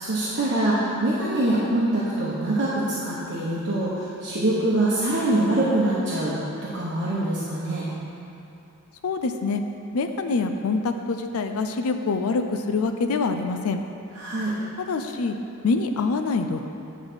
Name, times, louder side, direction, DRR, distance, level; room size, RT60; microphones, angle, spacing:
voice 1, 0.0-6.3 6.6-7.9 14.1-14.5, right 1 dB, 50° right, -8 dB, 1.1 m, -24 dB
voice 2, 9.0-9.6 9.9-13.8 14.9-15.4 15.6-16.6, left 4 dB, 70° left, 6 dB, 0.4 m, -25 dB
9.6 x 4.0 x 6.2 m, 2.7 s
head